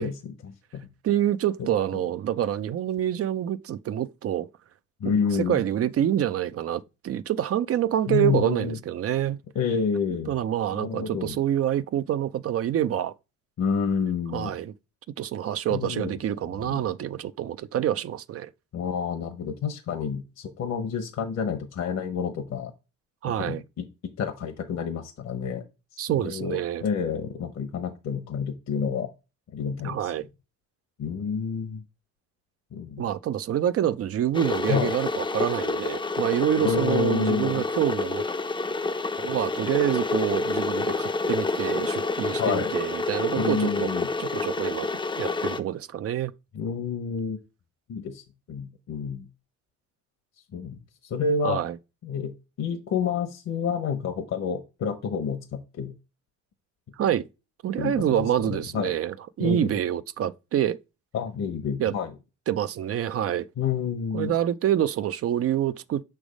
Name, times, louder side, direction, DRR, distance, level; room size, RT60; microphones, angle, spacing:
voice 1, 0.0-0.9 1.6-2.0 5.0-5.6 8.1-8.8 9.5-10.3 10.7-11.4 13.6-14.5 15.7-16.2 16.6-16.9 18.7-22.7 23.3-23.9 24.2-25.6 26.1-29.1 29.5-30.1 31.0-31.8 32.7-33.0 34.7-34.9 36.6-37.6 42.3-42.7 43.4-44.1 46.5-47.4 47.9-48.2 48.5-49.3 50.5-51.6 52.0-52.3 52.6-55.9 57.8-58.9 59.4-59.7 61.1-62.1 63.6-64.3, left 6 dB, 65° left, 1.0 m, -29 dB
voice 2, 1.0-4.5 5.0-5.1 5.5-9.4 10.3-13.1 14.3-14.7 15.2-18.5 23.2-23.6 26.0-26.8 29.8-30.3 33.0-38.3 39.2-43.9 44.2-44.9 45.2-46.3 51.4-51.8 57.0-57.3 57.6-60.8 61.8-61.9 62.5-63.5 64.1-66.0, right 11 dB, 50° right, 0.5 m, -27 dB
Water / Boiling, 34.3-45.6, left 3 dB, 15° left, 0.5 m, -28 dB
6.2 x 3.3 x 5.1 m
cardioid pair, 90°, 30 cm